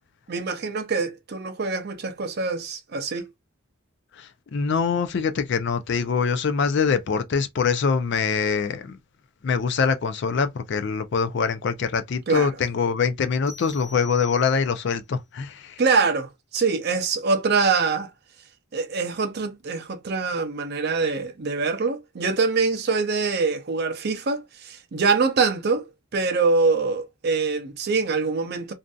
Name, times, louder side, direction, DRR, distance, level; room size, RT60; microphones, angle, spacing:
voice 1, 0.3-3.3 12.3-12.6 15.8-18.1 18.7-28.7, right 4 dB, 45° right, 0.5 m, -24 dB
voice 2, 4.5-8.8 9.4-15.7, left 5 dB, 55° left, 0.4 m, -24 dB
sound 1, 13.5-15.0, left 2 dB, 15° right, 0.9 m, -44 dB
2.6 x 2.4 x 2.2 m
head